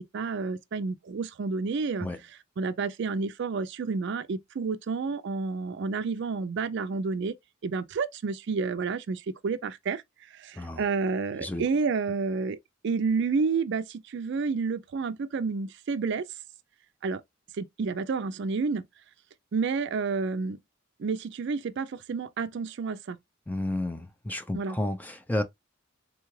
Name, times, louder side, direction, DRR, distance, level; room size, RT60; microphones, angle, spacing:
voice 1, 0.1-2.1 2.6-7.3 7.6-10.0 10.3-12.6 12.8-16.3 17.0-17.2 17.5-18.8 19.5-20.6 21.0-23.2 24.5-24.8, right 4 dB, 55° right, 0.4 m, -30 dB
voice 2, 23.5-25.4, left 1 dB, 10° left, 0.4 m, -31 dB
3.6 x 2.3 x 3.1 m
head